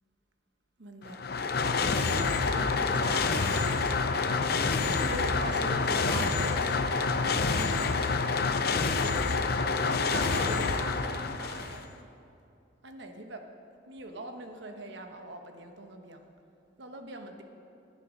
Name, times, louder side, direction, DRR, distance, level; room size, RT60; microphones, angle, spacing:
voice 1, 0.8-1.2 2.5-3.9 4.9-6.7 7.4-8.8 9.8-11.9 12.8-13.4 13.9-16.3 16.8-17.4, right 2 dB, 70° right, 5 dB, 1.1 m, -42 dB
sound 1, 1.0-11.9, left 4 dB, 55° left, 0.6 m, -27 dB
11.0 x 11.0 x 5.2 m, 2.6 s
head